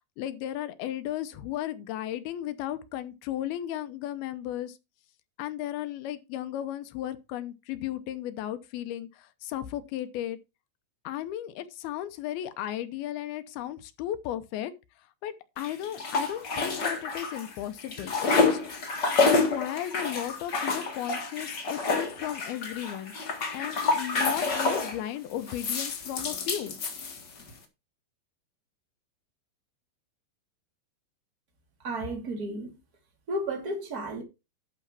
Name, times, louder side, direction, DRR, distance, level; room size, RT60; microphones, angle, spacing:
voice 1, 0.2-4.8 5.4-10.4 11.0-18.6 19.2-23.1 23.5-26.7, left 12 dB, 75° left, 2.6 m, -35 dB
sound 1, 15.6-17.5 17.8-25.0 25.5-27.5, left 3 dB, 50° left, 1.3 m, -28 dB
voice 2, 31.8-32.8 33.3-34.2, right 1 dB, 25° right, 2.7 m, -33 dB
11.5 x 4.5 x 5.9 m
omnidirectional pair, 4.9 m